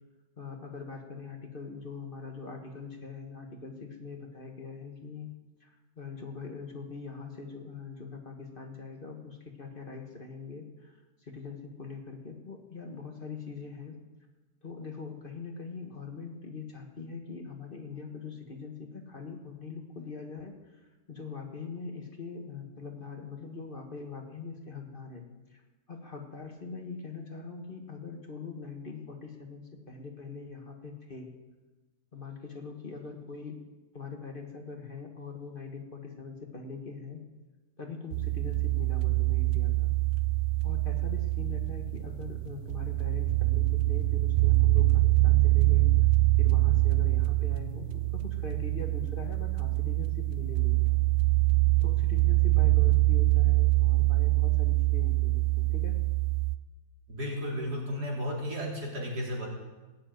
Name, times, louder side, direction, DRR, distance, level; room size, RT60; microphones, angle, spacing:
voice 1, 0.4-5.3 5.6-14.0 14.6-20.5 21.1-25.6 25.9-31.3 32.1-33.6 33.9-37.2 37.8-39.9 40.6-45.9 46.4-50.8 51.8-56.0, left 4 dB, 35° left, 2 dB, 1.8 m, -42 dB
sound 1, 38.1-56.6, right 19 dB, 60° right, 0.8 m, -25 dB
voice 2, 57.1-59.5, equal, 80° right, -2 dB, 4.0 m, -33 dB
17.0 x 7.4 x 9.2 m, 1.2 s
omnidirectional pair, 1.7 m